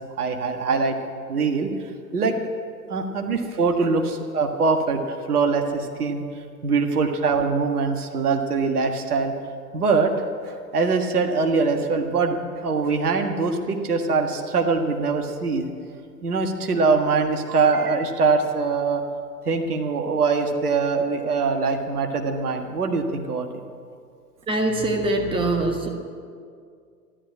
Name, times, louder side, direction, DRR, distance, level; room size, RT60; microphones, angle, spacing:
voice 1, 0.2-1.0 1.3-1.7 2.1-2.4 2.9-5.0 5.3-6.2 6.6-9.3 9.7-15.7 16.2-19.0 19.5-23.5, right 4 dB, 65° right, 4 dB, 1.7 m, -23 dB
voice 2, 24.5-25.9, right 2 dB, 10° right, 3 dB, 1.4 m, -23 dB
13.5 x 11.5 x 8.5 m, 2.2 s
figure-of-eight pair, 95°, 48 cm